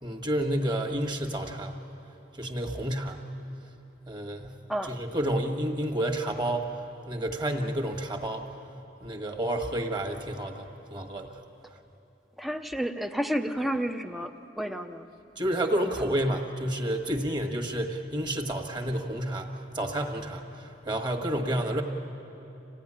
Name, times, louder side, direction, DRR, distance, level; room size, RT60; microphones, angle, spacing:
voice 1, 0.0-1.7 2.4-3.2 4.1-4.6 4.8-6.8 7.1-8.5 9.0-11.4 15.4-19.5 19.7-21.8, right 1 dB, 25° right, 4 dB, 1.6 m, -30 dB
voice 2, 12.4-15.1, equal, ahead, 6 dB, 0.7 m, -31 dB
26.5 x 16.5 x 10.0 m, 3.0 s
head